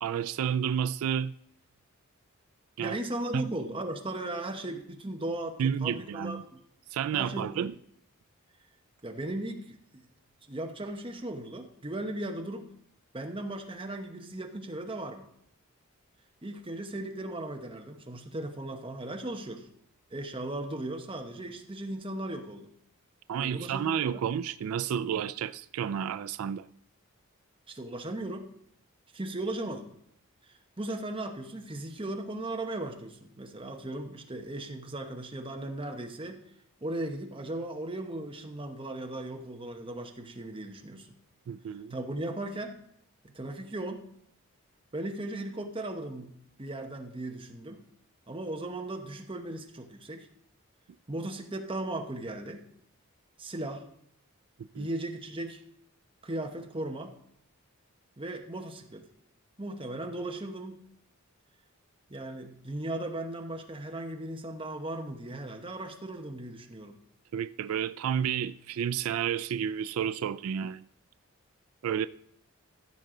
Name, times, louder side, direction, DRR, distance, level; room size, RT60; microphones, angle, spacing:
voice 1, 0.0-1.3 2.8-3.0 3.3-3.5 5.6-6.4 6.9-7.7 23.3-26.7 41.5-42.0 54.7-54.9 67.3-70.8 71.8-72.1, right 8 dB, 75° right, 0.3 m, -31 dB
voice 2, 2.8-6.6 7.1-7.7 9.0-10.0 10.5-12.7 13.1-15.3 16.4-19.7 20.1-22.7 23.4-24.2 27.7-28.5 29.1-29.9 30.8-36.4 36.8-41.1 41.9-42.8 43.2-44.1 44.9-46.3 46.6-47.8 48.3-50.3 51.1-52.6 53.4-53.9 54.8-55.6 56.2-57.2 58.2-59.0 59.6-60.8 62.1-67.0, right 1 dB, 25° right, 1.0 m, -37 dB
15.0 x 6.6 x 3.8 m
head